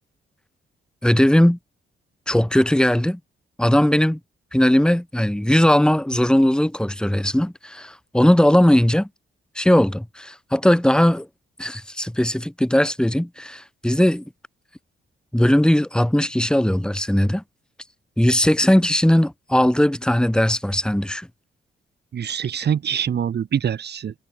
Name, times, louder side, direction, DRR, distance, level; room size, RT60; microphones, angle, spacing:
voice 1, 1.0-1.6 2.3-3.2 3.6-4.2 4.5-9.1 9.5-11.3 11.6-14.2 15.3-17.4 18.2-21.3, left 1 dB, 5° left, 6.5 m, -18 dB
voice 2, 22.1-24.1, right 8 dB, 60° right, 1.9 m, -24 dB
cardioid pair, 90°, 19 cm